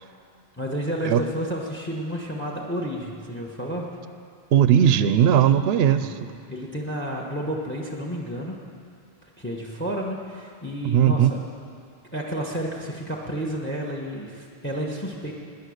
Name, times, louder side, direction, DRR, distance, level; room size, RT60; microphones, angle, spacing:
voice 1, 0.6-3.9 5.9-6.2 6.5-8.6 9.4-11.4 12.1-15.3, equal, 10° left, -1 dB, 1.3 m, -31 dB
voice 2, 4.5-6.2 10.8-11.3, right 9 dB, 80° right, 12 dB, 0.8 m, -18 dB
18.5 x 10.0 x 6.5 m, 2.4 s
omnidirectional pair, 1.0 m